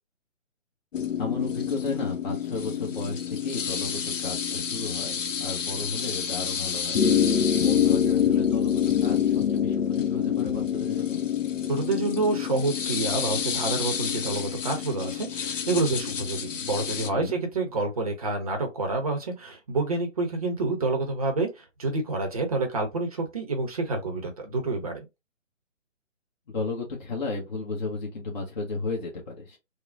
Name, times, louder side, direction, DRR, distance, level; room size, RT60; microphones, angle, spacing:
sound 1, 0.9-17.1, left 8 dB, 70° left, 0.7 m, -27 dB
voice 1, 1.2-11.2 17.0-17.4 26.5-29.6, left 3 dB, 35° left, 0.8 m, -34 dB
voice 2, 11.7-25.1, right 3 dB, 30° right, 0.6 m, -28 dB
3.0 x 2.0 x 2.5 m
figure-of-eight pair, 145°, 39 cm